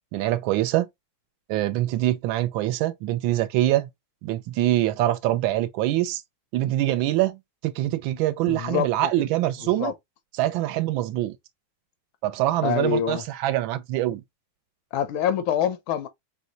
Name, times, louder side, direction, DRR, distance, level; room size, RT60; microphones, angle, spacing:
voice 1, 0.1-0.9 1.5-3.9 4.2-6.2 6.5-7.4 7.6-9.9 10.4-11.3 12.2-14.2, right 15 dB, 80° right, 1.3 m, -24 dB
voice 2, 8.5-9.3 9.8-9.9 12.6-13.2 14.9-16.1, left 9 dB, 85° left, 1.5 m, -26 dB
4.6 x 2.2 x 3.8 m
omnidirectional pair, 2.2 m